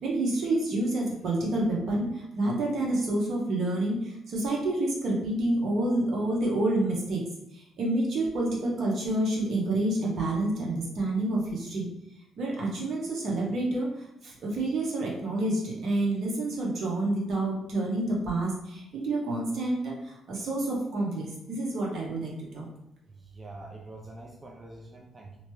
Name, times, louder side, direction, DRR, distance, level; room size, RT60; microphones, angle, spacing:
voice 1, 0.0-7.2 7.5-11.9 12.4-22.7, right 2 dB, 65° right, -2 dB, 0.9 m, -28 dB
voice 2, 23.4-25.4, right 2 dB, 25° right, 0 dB, 0.4 m, -45 dB
2.8 x 2.2 x 3.1 m, 0.83 s
cardioid pair, 90°, 0 cm